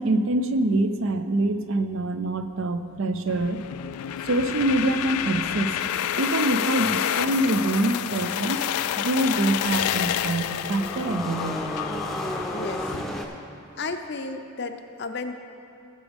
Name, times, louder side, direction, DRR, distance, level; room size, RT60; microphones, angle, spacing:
voice 1, 0.0-3.6 4.2-5.7 6.2-8.6 9.0-11.6, right 2 dB, 60° right, 9 dB, 0.5 m, -25 dB
sound 1, 3.3-13.0, left 10 dB, 90° left, 0.3 m, -29 dB
sound 2, 9.2-13.2, equal, ahead, 0.7 m, -33 dB
voice 2, 12.5-12.9 13.8-15.4, left 3 dB, 50° left, 7 dB, 0.6 m, -33 dB
18.5 x 7.1 x 3.6 m, 2.6 s
head